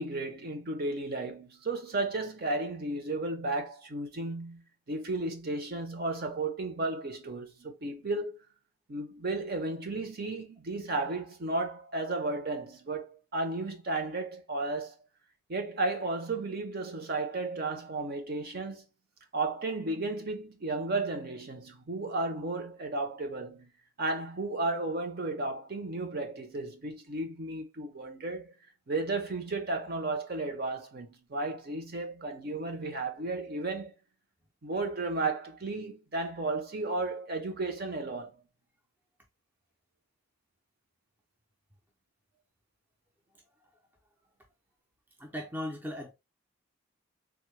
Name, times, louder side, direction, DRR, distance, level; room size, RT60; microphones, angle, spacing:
voice 1, 0.0-8.4 8.9-15.0 15.5-18.8 19.3-23.7 24.0-28.5 28.9-33.9 34.6-38.3, right 2 dB, 45° right, 0.7 m, -34 dB
voice 2, 45.2-46.1, left 1 dB, 10° right, 0.5 m, -37 dB
3.6 x 2.1 x 3.1 m
head